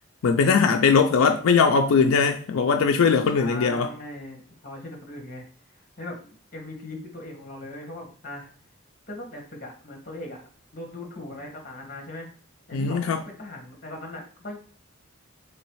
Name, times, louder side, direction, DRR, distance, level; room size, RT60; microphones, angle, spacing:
voice 1, 0.2-3.9 12.7-13.2, left 5 dB, 90° left, 0.4 m, -20 dB
voice 2, 3.4-8.5 9.1-12.3 12.7-14.6, left 2 dB, 40° left, 1.4 m, -39 dB
3.3 x 3.1 x 4.6 m
head